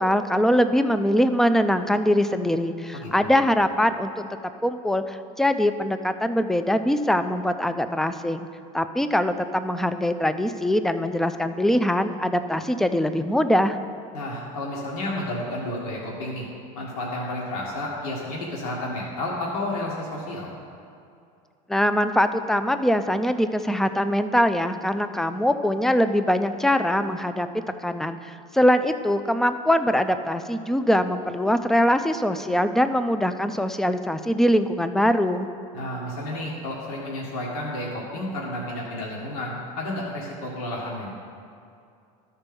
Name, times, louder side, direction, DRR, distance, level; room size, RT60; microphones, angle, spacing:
voice 1, 0.0-4.2 4.6-8.5 8.7-13.8 21.7-27.5 27.8-35.5, equal, ahead, 10 dB, 0.3 m, -22 dB
voice 2, 2.9-3.3 14.1-16.5 16.7-20.5 35.7-41.1, left 1 dB, 80° left, -4 dB, 1.8 m, -31 dB
12.5 x 4.5 x 5.2 m, 2.5 s
supercardioid pair, 110°, 19 cm